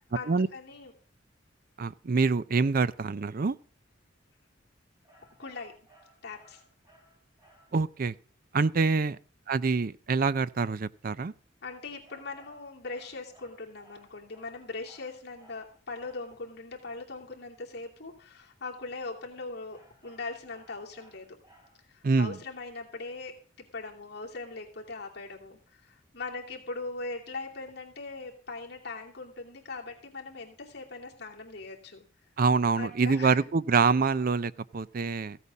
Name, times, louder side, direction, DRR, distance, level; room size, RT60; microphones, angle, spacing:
voice 1, 0.1-0.9 5.4-5.7 6.2-6.6 11.6-21.4 21.9-32.0 32.8-33.5, left 3 dB, 55° left, 2.7 m, -40 dB
voice 2, 1.8-3.6 7.7-8.1 8.5-9.2 9.5-11.3 22.0-22.4 32.4-35.4, right 4 dB, 45° right, 0.5 m, -26 dB
sound 1, 5.0-7.8 12.0-16.4 19.7-22.0, right 1 dB, 15° right, 4.7 m, -60 dB
15.5 x 8.4 x 5.4 m
head